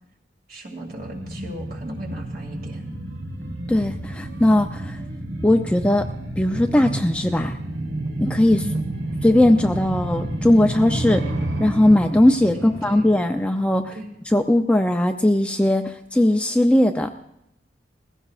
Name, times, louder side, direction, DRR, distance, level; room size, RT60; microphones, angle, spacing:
voice 1, 0.5-2.9 8.5-8.8 12.5-13.1 13.9-14.1, equal, 50° right, 1 dB, 2.6 m, -36 dB
sound 1, 0.8-14.1 14.4-14.5, right 1 dB, 75° right, 1.4 m, -30 dB
voice 2, 3.7-5.0 5.4-6.1 6.4-7.6 8.2-8.6 9.2-11.2 11.6-14.0 14.3-17.1, left 1 dB, 5° left, 5 dB, 0.4 m, -19 dB
21.0 x 16.0 x 2.4 m, 0.81 s
head